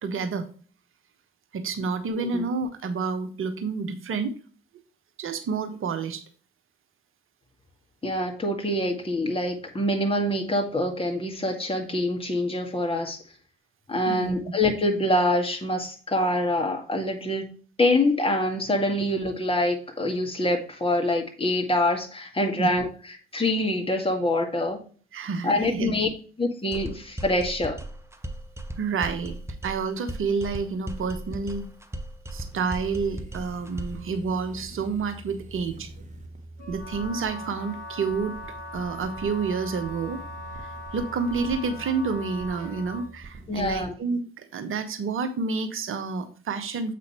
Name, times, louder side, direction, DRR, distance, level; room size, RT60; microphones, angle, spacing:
voice 1, 0.0-0.5 1.5-4.3 5.2-6.2 14.0-14.3 22.6-22.7 25.1-25.9 28.8-29.3 29.6-31.6 32.3-35.9 36.7-38.4 38.7-40.2 40.6-46.9, right 4 dB, 45° right, 9 dB, 1.1 m, -29 dB
voice 2, 2.1-2.4 8.0-13.2 13.9-17.5 17.8-22.9 23.3-24.8 25.4-26.1 26.4-27.8 43.5-43.9, left 1 dB, 20° left, 2 dB, 1.9 m, -25 dB
sound 1, 26.7-34.1, right 1 dB, 10° right, 0.9 m, -37 dB
sound 2, 32.4-43.9, right 2 dB, 25° right, 1.6 m, -44 dB
Wind instrument woodwind instrument, 36.6-43.1, left 2 dB, 55° left, 3.2 m, -40 dB
7.5 x 5.5 x 3.1 m, 0.40 s
figure-of-eight pair, 45°, 31 cm